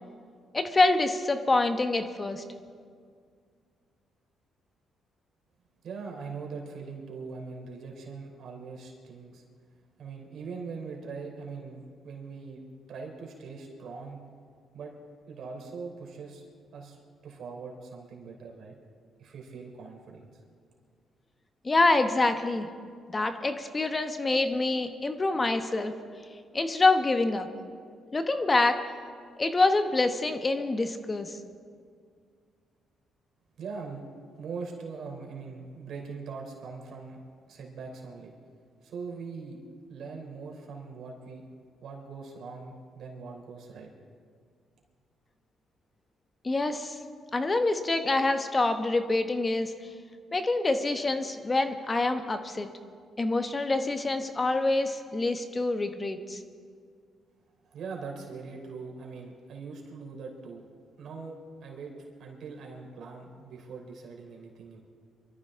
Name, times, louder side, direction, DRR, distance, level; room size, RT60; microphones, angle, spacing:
voice 1, 0.5-2.4 21.6-22.7 23.1-25.9 26.5-27.5 28.1-28.8 29.4-31.4 46.4-47.0 47.3-49.7 50.3-52.7 53.2-56.4, left 2 dB, 25° left, 8 dB, 1.0 m, -26 dB
voice 2, 5.8-9.4 10.0-12.6 12.9-14.2 14.7-14.9 15.3-16.4 16.7-17.0 17.2-18.8 19.2-20.3 33.6-34.0 34.3-37.2 37.5-38.3 38.8-39.6 39.9-41.4 41.8-43.9 57.6-60.6 61.0-61.4 61.6-61.9 62.2-64.8, right 4 dB, 70° right, 0 dB, 3.4 m, -41 dB
24.5 x 13.5 x 3.7 m, 2.1 s
cardioid pair, 90°, 0 cm